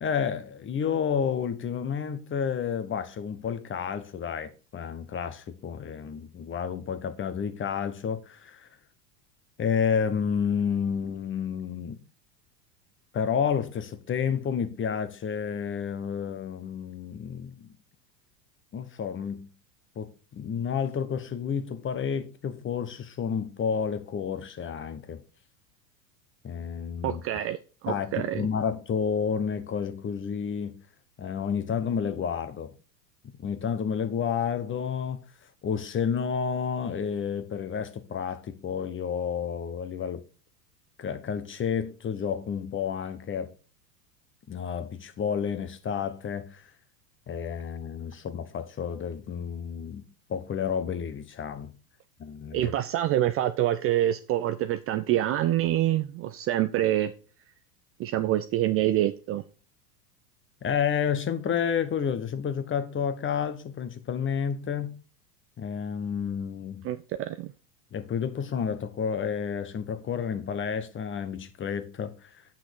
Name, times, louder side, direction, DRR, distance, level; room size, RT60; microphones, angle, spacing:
voice 1, 0.0-8.7 9.6-12.0 13.1-17.7 18.7-19.5 20.0-25.2 26.4-27.2 27.9-30.7 31.2-32.7 33.4-35.2 35.6-40.2 41.0-43.5 44.5-46.7 47.3-50.0 50.3-51.8 52.2-52.7 60.6-65.0 65.6-66.8 67.9-72.4, left 7 dB, 25° left, 1.1 m, -30 dB
voice 2, 27.0-27.6 27.8-28.5 52.5-57.1 58.0-59.4 66.8-67.5, right 13 dB, 30° right, 0.5 m, -26 dB
8.2 x 6.0 x 4.6 m
hypercardioid pair, 95°, 49 cm